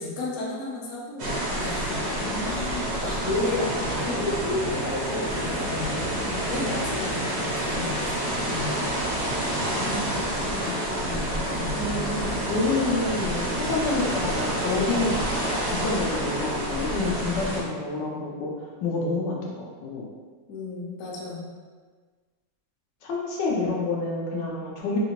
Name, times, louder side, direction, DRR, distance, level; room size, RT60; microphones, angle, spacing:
voice 1, 0.0-1.3 1.6-2.0 2.4-2.8 3.0-6.0 6.5-8.8 11.0-12.0 20.5-21.4, left 2 dB, 60° left, -4 dB, 1.0 m, -32 dB
sound 1, 1.2-17.6, right 1 dB, 65° right, 0.6 m, -28 dB
voice 2, 2.2-2.9 6.2-6.4 9.7-11.2 11.7-15.2 15.8-20.1 23.0-25.0, left 3 dB, 90° left, -3 dB, 1.3 m, -29 dB
3.4 x 2.8 x 2.9 m, 1.5 s
omnidirectional pair, 1.9 m